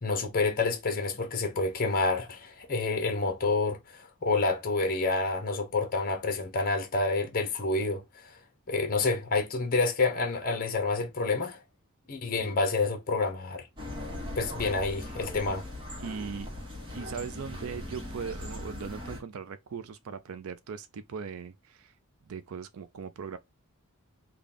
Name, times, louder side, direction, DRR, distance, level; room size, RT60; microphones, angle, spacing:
voice 1, 0.0-8.4 8.7-11.6 12.1-13.7 14.4-15.6, left 3 dB, 40° left, 0.8 m, -28 dB
sound 1, 13.8-19.2, left 1 dB, 25° right, 1.1 m, -39 dB
voice 2, 16.0-16.5 16.9-21.9 22.3-23.4, right 6 dB, 70° right, 0.4 m, -39 dB
3.4 x 2.3 x 3.7 m
head